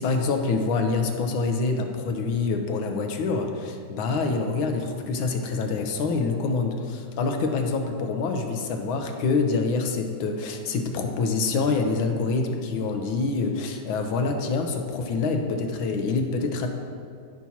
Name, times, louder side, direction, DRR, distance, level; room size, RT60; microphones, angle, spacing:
voice 1, 0.0-16.7, left 4 dB, 80° left, 4 dB, 1.6 m, -26 dB
15.0 x 5.9 x 2.8 m, 2.2 s
omnidirectional pair, 2.2 m